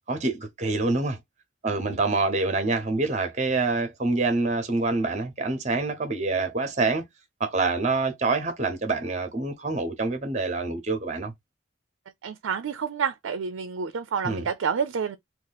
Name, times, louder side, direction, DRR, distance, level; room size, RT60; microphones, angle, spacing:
voice 1, 0.1-1.2 1.6-7.0 7.4-11.3 14.2-14.5, right 3 dB, 35° right, 0.8 m, -26 dB
voice 2, 12.2-15.2, right 6 dB, 80° right, 0.4 m, -29 dB
2.9 x 2.4 x 3.9 m
head